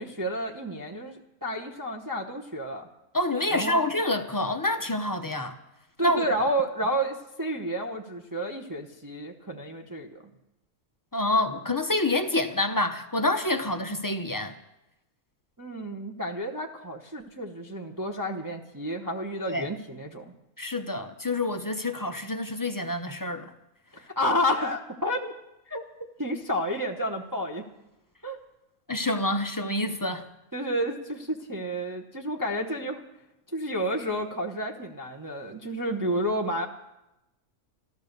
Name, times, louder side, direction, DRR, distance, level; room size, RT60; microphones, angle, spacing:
voice 1, 0.0-2.9 3.5-3.8 6.0-10.2 15.6-20.3 23.9-25.3 25.7-25.8 26.2-27.6 28.2-28.4 30.5-33.0 33.5-36.7, equal, 15° right, 1 dB, 0.8 m, -30 dB
voice 2, 3.1-5.5 6.0-6.2 11.1-14.5 19.4-19.7 20.6-23.5 28.9-30.3, left 2 dB, 25° left, 7 dB, 0.5 m, -27 dB
13.5 x 13.0 x 6.6 m, 0.91 s
omnidirectional pair, 1.5 m